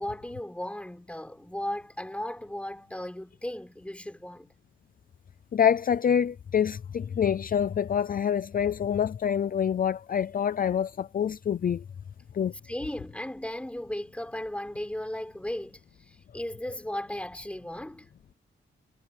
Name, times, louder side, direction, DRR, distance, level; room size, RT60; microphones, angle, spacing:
voice 1, 0.0-4.5 12.6-18.0, left 1 dB, 5° left, 6.8 m, -36 dB
voice 2, 5.5-11.8 12.3-12.5, left 8 dB, 45° left, 0.5 m, -26 dB
wide cardioid pair, 170°, 21 cm